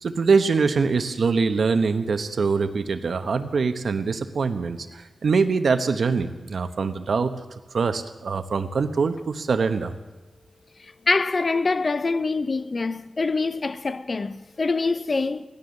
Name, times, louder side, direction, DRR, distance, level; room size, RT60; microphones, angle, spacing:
voice 1, 0.0-10.0, right 4 dB, 80° right, 0.9 m, -23 dB
voice 2, 10.8-15.5, left 3 dB, 50° left, 0.5 m, -25 dB
16.0 x 12.0 x 6.5 m
wide cardioid pair, 100°, 0 cm